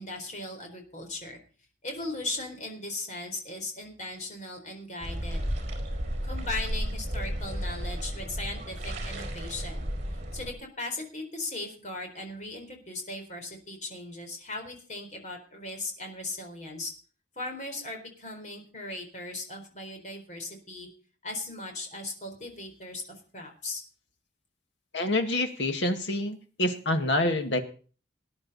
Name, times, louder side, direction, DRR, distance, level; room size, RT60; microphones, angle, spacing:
voice 1, 0.0-1.4 1.8-5.4 6.2-9.8 10.3-16.9 17.4-20.9 21.2-23.8, left 2 dB, 40° left, 3 dB, 4.0 m, -38 dB
sound 1, 5.0-10.5, equal, 40° right, 4.8 m, -33 dB
voice 2, 24.9-27.6, left 1 dB, 70° left, 6 dB, 2.0 m, -27 dB
19.0 x 10.5 x 4.2 m, 0.40 s
head